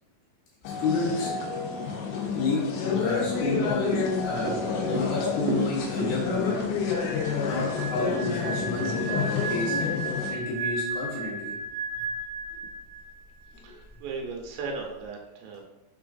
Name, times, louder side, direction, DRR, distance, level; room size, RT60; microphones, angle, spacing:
sound 1, 0.6-10.3, left 6 dB, 90° left, 2.5 m, -29 dB
voice 1, 0.8-1.3 2.2-6.6 7.4-9.8 10.3-11.5, left 2 dB, 70° left, -6 dB, 2.3 m, -30 dB
sound 2, 3.4-9.9 10.2-10.3, right 3 dB, 60° right, 1.8 m, -38 dB
sound 3, 6.8-13.2 13.5-13.7, right 3 dB, 45° left, 1.3 m, -34 dB
voice 2, 13.6-15.6, right 4 dB, 85° right, 1 dB, 2.5 m, -36 dB
5.6 x 3.8 x 2.4 m, 0.97 s
omnidirectional pair, 4.2 m